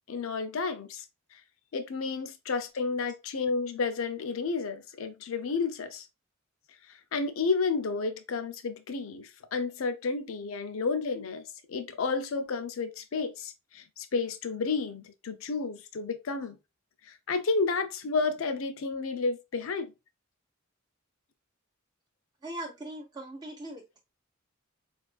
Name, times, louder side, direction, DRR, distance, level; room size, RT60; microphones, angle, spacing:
voice 1, 0.1-1.0 1.3-1.4 1.7-6.1 6.9-16.6 17.0-19.9, left 4 dB, 70° left, 0.5 m, -31 dB
voice 2, 22.4-24.0, right 1 dB, 20° right, 0.4 m, -40 dB
4.2 x 2.4 x 2.3 m
head